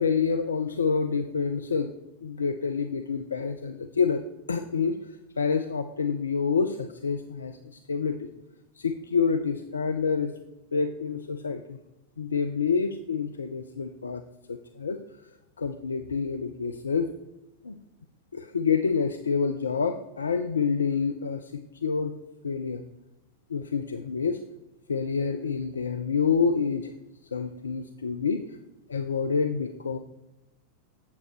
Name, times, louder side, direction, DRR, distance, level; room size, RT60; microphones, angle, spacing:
voice 1, 0.0-1.9 2.2-4.2 4.5-7.6 7.9-8.3 8.8-10.3 10.7-11.8 12.2-14.2 14.5-15.0 15.6-17.1 17.6-17.8 18.3-22.2 22.4-22.8 23.5-24.4 24.9-26.9 27.3-28.6 28.9-30.0, left 5 dB, 75° left, 8 dB, 0.4 m, -27 dB
8.7 x 7.6 x 3.1 m, 0.98 s
figure-of-eight pair, 90°, 0 cm